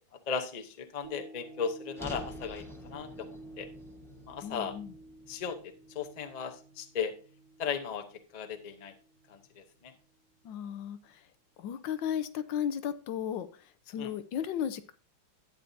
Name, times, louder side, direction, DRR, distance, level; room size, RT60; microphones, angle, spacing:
voice 1, 0.3-3.7 4.3-4.7 5.3-7.1 7.6-8.0 8.3-8.9 9.3-9.9 14.0-14.1, left 6 dB, 50° left, 6 dB, 0.5 m, -36 dB
sound 1, 1.0-9.4 9.9-10.0, right 2 dB, 85° right, 2.8 m, -51 dB
sound 2, 2.0-6.2, left 1 dB, ahead, 0.8 m, -48 dB
voice 2, 4.4-4.9 10.4-11.2 11.6-14.9, left 9 dB, 75° left, 12 dB, 1.3 m, -35 dB
12.0 x 8.7 x 2.7 m, 0.37 s
omnidirectional pair, 2.2 m